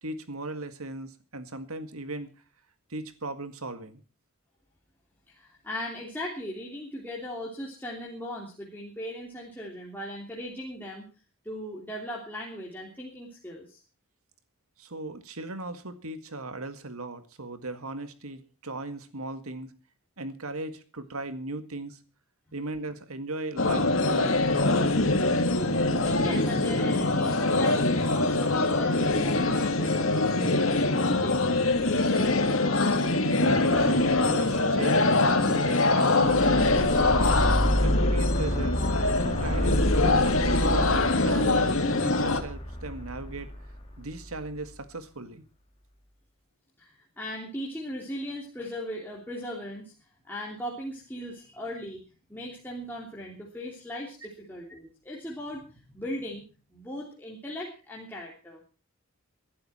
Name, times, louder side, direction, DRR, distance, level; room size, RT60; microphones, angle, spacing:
voice 1, 0.0-2.3 2.9-4.0 14.8-19.7 20.2-22.0 22.5-24.5 33.2-37.4 37.8-38.8 39.2-43.5 44.0-45.4, right 2 dB, 85° right, 10 dB, 1.9 m, -38 dB
voice 2, 5.3-11.0 11.4-13.8 25.9-32.8 46.8-49.9 50.2-52.0 52.3-58.6, equal, 10° left, -3 dB, 3.1 m, -38 dB
sound 1, 23.6-42.4, left 2 dB, 70° left, 1.9 m, -24 dB
Creepy Bass Hit, 36.2-44.5, equal, 25° left, 2.8 m, -29 dB
21.0 x 11.5 x 4.4 m, 0.35 s
head